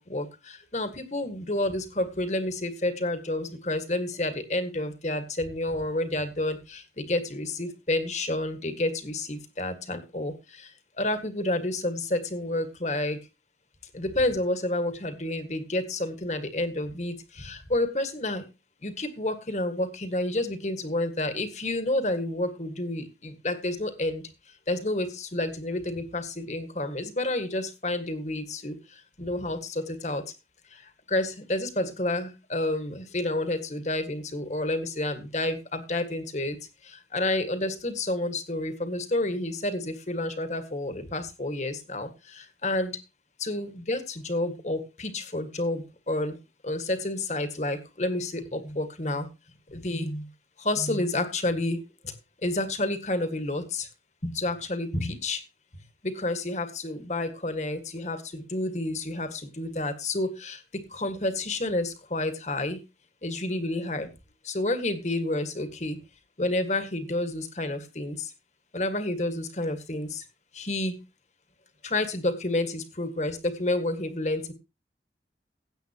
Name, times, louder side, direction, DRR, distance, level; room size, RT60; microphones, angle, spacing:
voice 1, 0.0-13.2 13.9-18.5 18.8-30.2 30.7-43.0 43.4-46.4 46.6-49.3 49.7-50.3 50.6-51.8 52.4-53.9 54.2-55.4 56.0-62.8 63.2-64.1 64.4-66.0 66.4-68.3 68.7-70.3 70.5-71.0 71.8-74.5, left 2 dB, 40° left, 9 dB, 1.7 m, -30 dB
16.5 x 7.7 x 2.9 m, 0.27 s
head